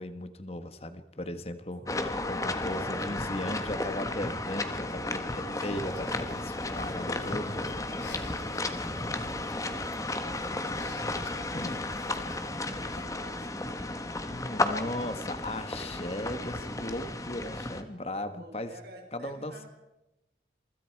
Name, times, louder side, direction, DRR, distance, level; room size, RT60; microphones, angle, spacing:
voice 1, 0.0-7.7 8.9-9.1 11.5-11.8 14.2-18.7 19.1-19.5, left 1 dB, 35° left, 10 dB, 1.5 m, -37 dB
voice 2, 1.8-2.2 5.2-6.0 7.0-11.9 12.3-13.7 14.9-16.1 18.3-19.7, equal, 55° right, 3 dB, 5.0 m, -52 dB
sound 1, 1.9-17.8, left 2 dB, 20° left, 1.4 m, -33 dB
Breathing, 5.5-13.1, left 3 dB, 85° left, 3.6 m, -51 dB
27.5 x 24.5 x 4.8 m, 0.98 s
head